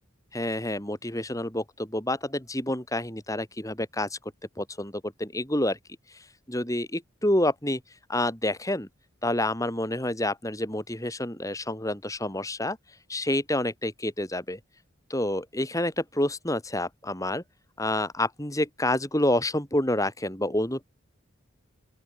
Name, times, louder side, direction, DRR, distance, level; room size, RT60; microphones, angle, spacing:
voice 1, 0.3-4.2 4.6-5.8 6.1-7.8 8.1-8.9 9.2-12.8 13.1-14.6 15.1-17.4 17.8-20.9, left 1 dB, 15° left, 4.0 m, -28 dB
open air
head